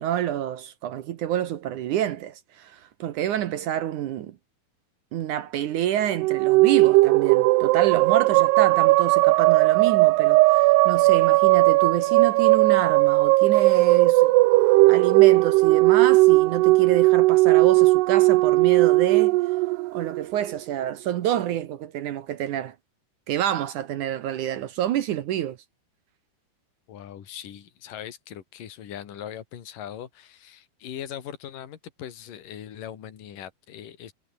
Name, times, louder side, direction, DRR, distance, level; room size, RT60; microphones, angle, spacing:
voice 1, 0.0-4.4 5.1-14.3 14.9-19.4 19.9-22.8 23.3-25.6, right 11 dB, 65° right, 2.0 m, -28 dB
sound 1, 6.1-20.6, right 21 dB, 90° right, 2.7 m, -18 dB
voice 2, 26.9-34.1, left 10 dB, 60° left, 3.9 m, -40 dB
omnidirectional pair, 4.6 m